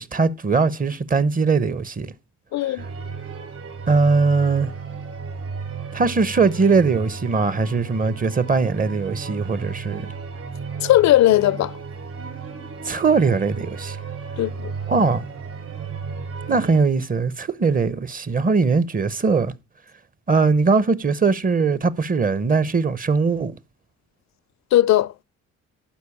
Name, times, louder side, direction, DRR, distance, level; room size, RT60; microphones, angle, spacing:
voice 1, 0.0-2.1 2.7-2.8 3.9-4.7 5.9-10.1 12.8-14.0 14.9-15.2 16.5-19.5 20.3-23.6, right 4 dB, 30° right, 0.8 m, -20 dB
voice 2, 2.5-2.9 10.8-11.7 14.4-14.7 24.7-25.1, left 14 dB, 65° left, 0.5 m, -17 dB
sound 1, 2.8-16.8, right 5 dB, 50° right, 3.8 m, -34 dB
11.5 x 4.7 x 7.1 m
cardioid pair, 90°, 30 cm